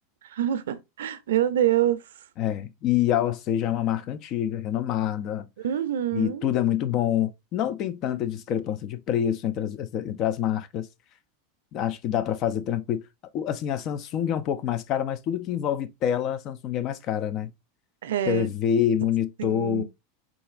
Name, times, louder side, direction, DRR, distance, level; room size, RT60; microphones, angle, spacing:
voice 1, 0.2-2.0 5.6-6.5 18.0-18.5 19.4-19.8, right 11 dB, 80° right, 0.4 m, -26 dB
voice 2, 2.4-5.5 6.1-10.9 11.7-13.0 13.3-17.5 18.3-19.8, left 10 dB, 45° left, 0.4 m, -26 dB
3.9 x 2.4 x 2.4 m
hypercardioid pair, 105°, 0 cm